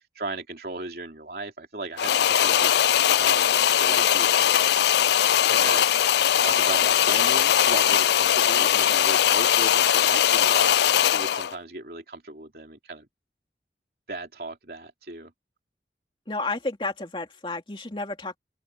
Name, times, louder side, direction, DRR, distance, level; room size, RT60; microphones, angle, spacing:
voice 1, 0.2-2.7 3.2-4.5 5.4-5.9 6.4-13.1 14.1-15.3, right 2 dB, 55° right, 3.3 m, -36 dB
sound 1, 2.0-11.6, left 10 dB, 70° left, 0.4 m, -20 dB
voice 2, 16.3-18.4, left 3 dB, 30° left, 2.8 m, -31 dB
open air
head